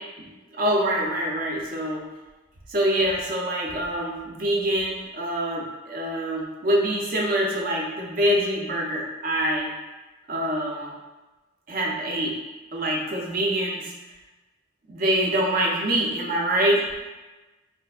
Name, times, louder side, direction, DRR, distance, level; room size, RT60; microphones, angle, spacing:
voice 1, 0.5-2.0 2.7-9.7 10.3-10.9 11.7-12.4 12.7-13.9 14.9-16.8, right 1 dB, 45° right, -2 dB, 0.5 m, -25 dB
2.8 x 2.4 x 3.4 m, 1.2 s
head